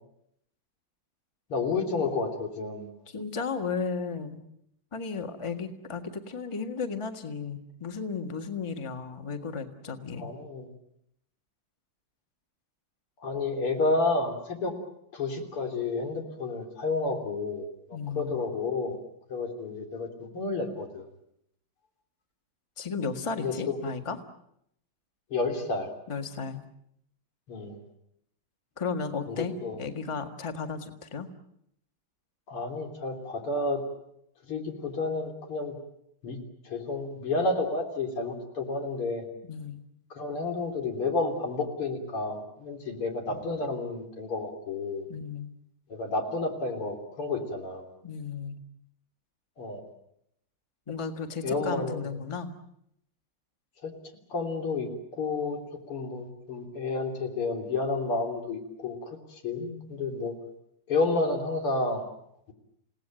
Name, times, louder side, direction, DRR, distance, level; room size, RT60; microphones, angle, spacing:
voice 1, 1.5-2.9 10.2-10.7 13.2-14.7 15.1-17.7 18.2-19.0 19.3-21.1 23.4-23.8 25.3-25.9 27.5-27.8 29.3-29.8 32.5-33.8 34.5-35.8 36.2-39.2 40.1-45.1 45.9-47.8 49.6-49.8 51.4-52.0 53.8-53.9 54.3-55.6 55.9-59.1 59.4-60.3 60.9-62.1, left 3 dB, 85° left, 3 dB, 4.3 m, -30 dB
voice 2, 3.1-4.4 4.9-10.3 17.9-18.4 22.8-24.2 26.1-26.6 28.8-31.3 39.5-39.8 45.1-45.5 48.0-48.6 50.9-52.5 59.6-60.2, left 5 dB, 15° left, 6 dB, 1.5 m, -34 dB
29.5 x 18.0 x 9.0 m, 0.76 s
omnidirectional pair, 2.3 m